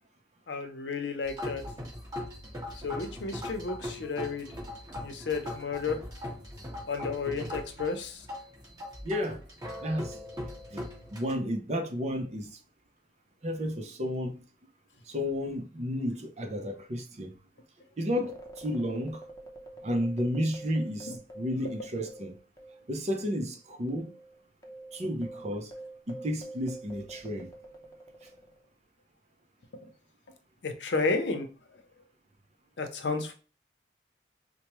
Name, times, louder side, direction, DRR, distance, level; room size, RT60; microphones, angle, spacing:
voice 1, 0.5-1.6 2.8-4.5 5.0-6.0 6.9-8.3 21.1-21.2 30.6-31.5 31.7-31.8 32.8-33.3, left 4 dB, 80° left, 0.7 m, -32 dB
sound 1, 1.2-11.3, left 1 dB, 20° right, 1.5 m, -40 dB
voice 2, 9.0-9.4 9.8-10.2 10.7-12.6 13.4-14.4 15.1-17.3 18.0-19.2 19.8-22.4 22.9-24.1 24.9-25.7 26.1-27.5, equal, 40° right, 0.7 m, -32 dB
sound 2, 18.1-22.9 23.1-23.3 23.9-28.7, right 1 dB, 20° left, 0.7 m, -47 dB
4.6 x 2.2 x 3.0 m
head